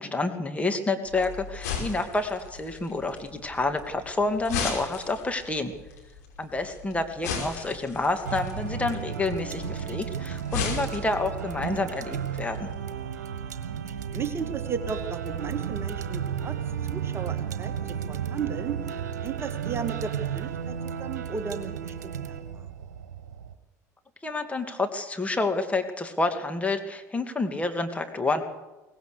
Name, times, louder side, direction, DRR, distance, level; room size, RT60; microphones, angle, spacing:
voice 1, 0.0-5.7 6.4-12.7 24.2-28.4, left 3 dB, 15° left, 6 dB, 2.4 m, -29 dB
sound 1, 1.1-12.8, left 5 dB, 65° left, 5.4 m, -37 dB
sound 2, 8.2-23.5, right 8 dB, 70° right, 1.4 m, -33 dB
voice 2, 14.1-16.6 16.9-17.7 18.1-22.7, right 6 dB, 30° right, 8 dB, 1.9 m, -35 dB
23.0 x 18.5 x 6.8 m, 1.1 s
figure-of-eight pair, 65°, 9 cm